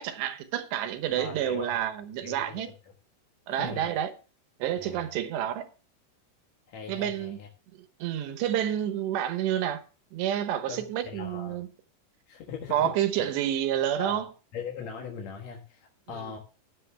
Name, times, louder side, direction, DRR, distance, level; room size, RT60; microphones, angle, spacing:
voice 1, 0.0-2.7 3.5-4.1 4.6-5.7 6.9-7.4 8.0-9.8 10.1-11.7 12.7-14.3 16.1-16.3, right 11 dB, 90° right, 3.3 m, -29 dB
voice 2, 1.2-1.8 2.2-2.7 3.6-3.9 4.8-5.2 6.7-7.5 10.7-11.6 12.3-13.3 14.0-16.4, left 6 dB, 60° left, 1.9 m, -40 dB
15.5 x 10.5 x 2.3 m
omnidirectional pair, 4.8 m